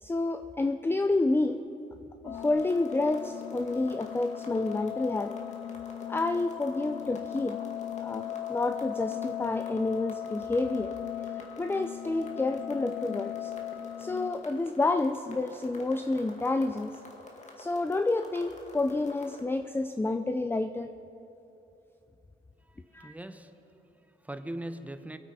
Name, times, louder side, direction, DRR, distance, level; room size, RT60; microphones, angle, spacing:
voice 1, 0.0-1.8 2.2-5.4 6.1-7.6 8.0-11.0 11.6-13.5 14.0-17.0 17.6-20.9 22.9-23.1, left 2 dB, 10° left, 9 dB, 0.5 m, -29 dB
sound 1, 2.2-14.3, left 11 dB, 75° left, 1.4 m, -38 dB
sound 2, 2.3-19.4, left 2 dB, 35° left, 2.2 m, -49 dB
voice 2, 22.6-25.2, right 1 dB, 5° right, 9 dB, 0.9 m, -42 dB
23.0 x 8.2 x 5.6 m, 2.9 s
cardioid pair, 90°, 20 cm